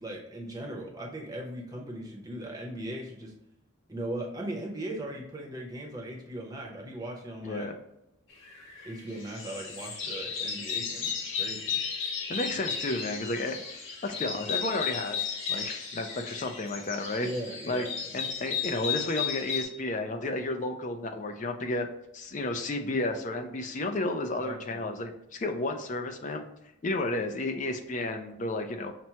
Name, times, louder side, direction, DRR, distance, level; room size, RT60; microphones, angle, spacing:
voice 1, 0.0-3.3 3.9-7.7 8.8-11.8 17.2-18.1 24.4-24.8, right 1 dB, 20° right, -1 dB, 0.7 m, -38 dB
voice 2, 7.4-7.8 12.3-17.3 17.7-17.9 18.1-21.9 22.1-26.4 26.8-28.9, left 2 dB, 35° left, 5 dB, 0.4 m, -32 dB
sound 1, 8.5-8.9 9.3-19.6, left 7 dB, 65° left, 0.8 m, -34 dB
5.9 x 2.1 x 2.8 m, 0.85 s
head